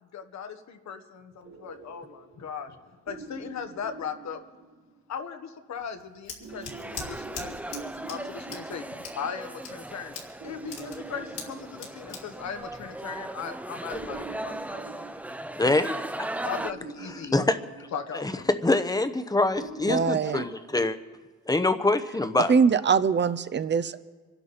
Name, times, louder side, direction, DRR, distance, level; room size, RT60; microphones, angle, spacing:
voice 1, 0.0-2.8 3.1-4.4 5.1-8.8 9.1-10.1 10.4-14.8 16.4-17.4 17.9-18.5, left 7 dB, 65° left, 7 dB, 1.4 m, -38 dB
sound 1, 1.4-5.1 6.4-9.7 10.4-12.5 13.9-16.0 16.5-18.5 19.5-20.0, right 4 dB, 65° right, 3.1 m, -45 dB
Scissors, 5.8-13.5, left 5 dB, 80° left, 4.0 m, -43 dB
sound 2, 6.5-16.7, right 1 dB, 5° right, 0.5 m, -38 dB
voice 2, 15.6-16.3 17.3-17.6 18.1-21.0 21.5-22.6, left 2 dB, 10° left, 10 dB, 0.9 m, -25 dB
voice 3, 19.9-20.4 22.5-24.0, right 6 dB, 35° right, 14 dB, 0.8 m, -23 dB
25.0 x 11.5 x 4.2 m, 1.4 s
cardioid pair, 90°, 30 cm